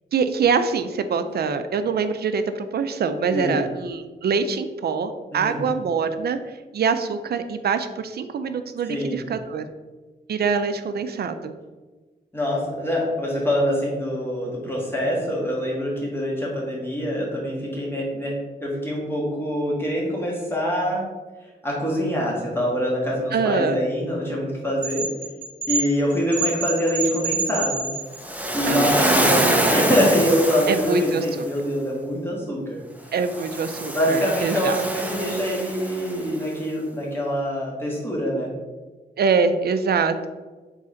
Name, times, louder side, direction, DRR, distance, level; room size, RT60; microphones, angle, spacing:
voice 1, 0.1-9.6 10.3-11.5 23.3-23.8 28.6-29.8 30.7-31.5 33.1-34.8 39.2-40.3, right 5 dB, 65° right, 9 dB, 0.4 m, -24 dB
voice 2, 5.3-5.6 8.9-9.2 12.3-18.3 18.6-21.1 21.6-25.0 25.7-27.9 28.5-32.8 33.9-38.5, equal, 10° left, -4 dB, 1.5 m, -24 dB
sound 1, 24.8-28.4, right 4 dB, 45° right, 1.0 m, -28 dB
Waves surf, 28.2-31.4 33.2-36.3, right 1 dB, 10° right, 0.5 m, -25 dB
3.8 x 3.2 x 3.8 m, 1.3 s
cardioid pair, 85°, 18 cm